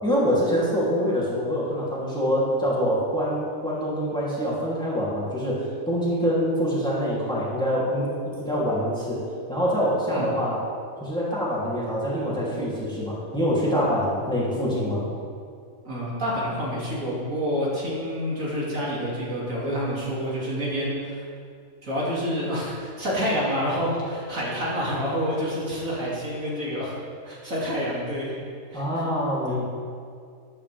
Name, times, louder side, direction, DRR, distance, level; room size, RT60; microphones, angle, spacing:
voice 1, 0.0-9.2 9.5-10.6 11.0-15.1 28.7-29.6, equal, 5° left, -8 dB, 2.9 m, -25 dB
voice 2, 15.8-21.3 21.8-26.9 27.2-28.3 28.7-28.8, equal, 65° right, -6 dB, 3.0 m, -28 dB
13.0 x 10.5 x 3.5 m, 2.3 s
omnidirectional pair, 1.5 m